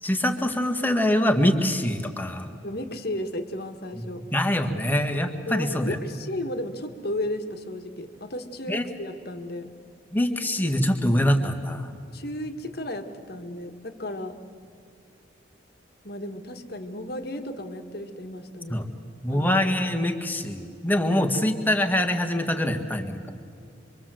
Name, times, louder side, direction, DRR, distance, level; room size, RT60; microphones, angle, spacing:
voice 1, 0.0-2.5 3.9-4.0 4.3-6.0 8.7-8.8 10.1-11.9 18.7-18.9 19.2-23.3, left 1 dB, 10° left, 5 dB, 1.6 m, -24 dB
voice 2, 2.6-4.2 5.5-9.7 12.1-14.4 16.0-18.9 19.3-19.7, left 1 dB, 50° left, 6 dB, 1.7 m, -34 dB
26.0 x 24.0 x 7.7 m, 2.3 s
head